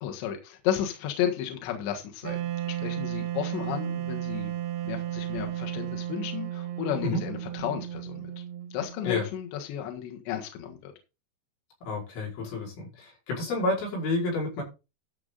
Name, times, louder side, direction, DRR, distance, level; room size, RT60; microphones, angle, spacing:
voice 1, 0.0-4.5 4.8-8.3 8.7-10.9, left 10 dB, 70° left, 3.6 m, -33 dB
Wind instrument woodwind instrument, 2.2-9.2, right 12 dB, 80° right, 3.2 m, -34 dB
voice 2, 11.8-14.6, left 2 dB, 85° left, 7.7 m, -30 dB
13.0 x 6.9 x 3.9 m
omnidirectional pair, 5.4 m